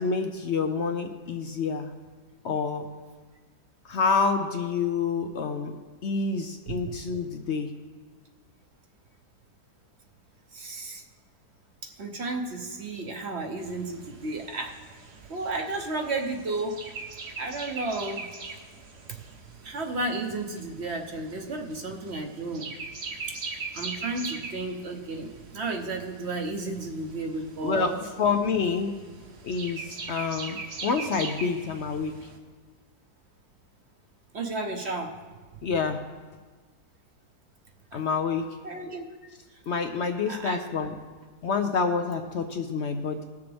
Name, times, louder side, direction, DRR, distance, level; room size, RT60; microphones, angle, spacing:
voice 1, 0.0-1.9 2.4-2.9 3.8-5.8 6.0-7.7 27.6-27.9 28.2-28.9 29.4-32.1 35.6-36.0 37.9-38.5 39.7-40.9 41.4-43.2, left 5 dB, 60° left, 6 dB, 0.7 m, -27 dB
voice 2, 10.5-11.0 11.8-14.8 15.3-16.9 17.4-18.3 19.1-19.2 19.6-22.7 23.3-23.4 23.7-28.0 34.3-35.2 37.9-38.0 38.6-39.1 39.5-39.6 40.3-40.6, right 2 dB, 50° right, 4 dB, 1.0 m, -33 dB
sound 1, 13.6-32.4, right 4 dB, 70° right, 1.7 m, -41 dB
20.0 x 6.9 x 3.4 m, 1.4 s
omnidirectional pair, 1.8 m